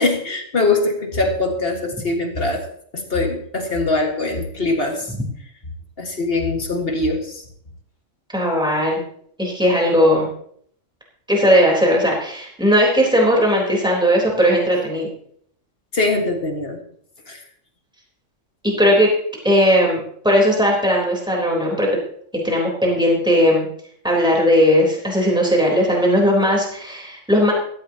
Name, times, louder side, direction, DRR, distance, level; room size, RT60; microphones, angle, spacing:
voice 1, 0.0-2.7 2.9-5.1 6.0-7.4 15.9-16.8 17.3-17.4, left 2 dB, 50° left, 2 dB, 2.1 m, -22 dB
voice 2, 8.3-9.0 9.4-10.3 11.3-15.1 18.6-19.1 19.4-21.9 22.4-23.7 24.0-27.5, equal, 5° right, -2 dB, 4.0 m, -17 dB
16.5 x 14.5 x 3.0 m, 0.63 s
omnidirectional pair, 1.3 m